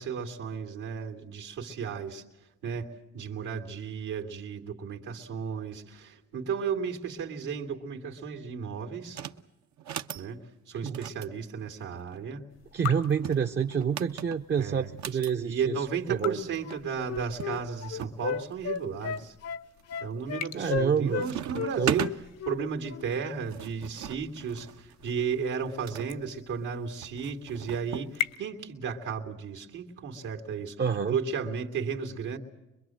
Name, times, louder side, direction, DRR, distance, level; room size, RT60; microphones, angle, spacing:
voice 1, 0.0-2.2 2.6-2.9 3.1-9.2 10.1-12.4 14.6-14.9 15.4-19.3 20.0-22.1 22.5-30.8 31.1-32.4, right 6 dB, 80° right, 3 dB, 2.6 m, -34 dB
sound 1, 9.1-9.4 9.8-10.3 10.9-12.2 13.0-15.3 16.4-16.5 16.7-16.8 17.4-18.2 18.7-19.3 19.8-20.2 20.5-20.9 21.2-22.2 23.1-26.1 27.0-28.1, right 10 dB, 65° right, 0.9 m, -38 dB
sound 2, 12.5-28.4, left 10 dB, 85° left, 1.5 m, -44 dB
voice 2, 12.7-16.4 20.5-21.3 21.6-22.1 30.8-31.2, right 7 dB, 35° right, 5 dB, 0.7 m, -28 dB
Wind instrument woodwind instrument, 16.6-21.3 21.5-22.6 22.9-23.1, left 8 dB, 55° left, 0.8 m, -34 dB
24.0 x 22.5 x 7.7 m, 0.95 s
cardioid pair, 90°, 30 cm